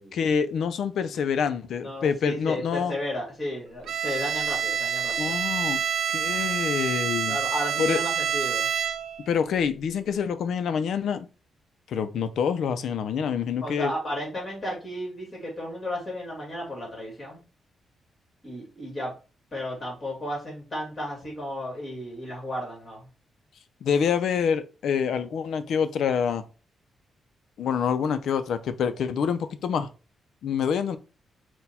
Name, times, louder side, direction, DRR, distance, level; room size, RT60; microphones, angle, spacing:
voice 1, 0.1-2.9 5.2-5.8 6.1-7.4 7.8-8.0 9.3-11.3 11.9-13.9 23.8-26.4 27.6-29.9 30.4-31.0, left 7 dB, 70° left, 0.4 m, -26 dB
voice 2, 1.8-5.3 7.3-8.7 13.6-17.4 18.4-19.1 19.5-23.1, left 1 dB, 30° left, 1.8 m, -33 dB
Bowed string instrument, 3.9-9.3, right 8 dB, 80° right, 0.3 m, -27 dB
4.2 x 2.2 x 4.1 m
cardioid pair, 140°, 0 cm